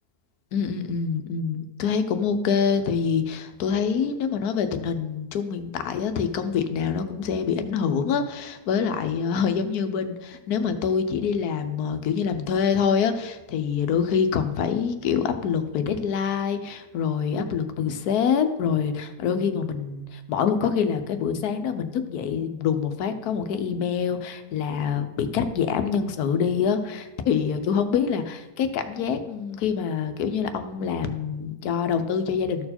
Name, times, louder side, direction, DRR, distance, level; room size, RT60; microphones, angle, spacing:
voice 1, 0.5-32.7, left 6 dB, 80° left, 9 dB, 1.2 m, -25 dB
13.5 x 4.5 x 4.2 m, 1.0 s
omnidirectional pair, 1.6 m